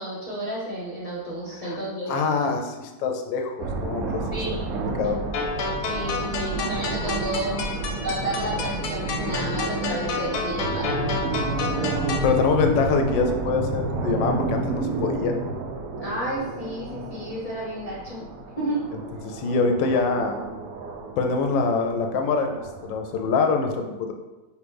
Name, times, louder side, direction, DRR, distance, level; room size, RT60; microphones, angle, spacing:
voice 1, 0.0-2.1 4.3-4.7 5.9-7.6 8.0-11.0 16.0-18.2 18.6-18.9, right 1 dB, 30° left, -8 dB, 0.7 m, -31 dB
voice 2, 2.1-4.2 5.0-5.2 11.8-11.9 12.2-15.4 19.2-20.4 21.2-22.6 22.9-24.1, left 4 dB, 90° left, 4 dB, 1.3 m, -24 dB
sound 1, 3.6-23.3, right 3 dB, 70° right, 0.9 m, -30 dB
sound 2, 5.3-12.3, left 4 dB, 70° left, 1.1 m, -31 dB
5.0 x 3.1 x 3.4 m, 1.1 s
omnidirectional pair, 1.9 m